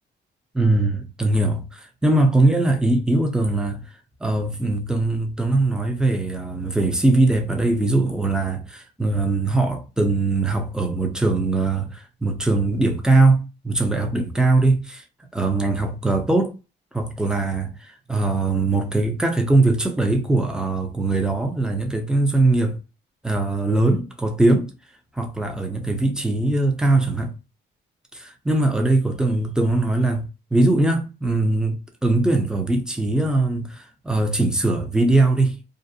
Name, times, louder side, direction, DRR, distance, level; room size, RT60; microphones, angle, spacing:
voice 1, 0.5-3.8 4.2-15.0 15.3-16.5 16.9-22.8 23.2-24.7 25.2-27.3 28.1-30.2 30.5-35.6, right 2 dB, 5° right, 0.6 m, -21 dB
2.5 x 2.1 x 2.6 m
cardioid pair, 90°, 20 cm